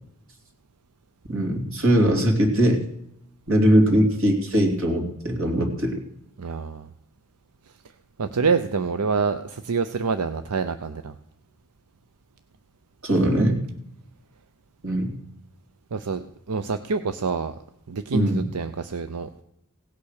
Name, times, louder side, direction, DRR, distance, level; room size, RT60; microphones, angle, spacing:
voice 1, 1.3-2.8 3.5-5.9 13.0-13.6 14.8-15.1 18.1-18.4, right 1 dB, 60° right, 3 dB, 2.8 m, -20 dB
voice 2, 6.4-6.9 8.2-11.1 15.9-17.6 17.9-19.3, right 5 dB, 90° right, 10 dB, 0.6 m, -26 dB
17.0 x 8.6 x 6.5 m, 0.80 s
head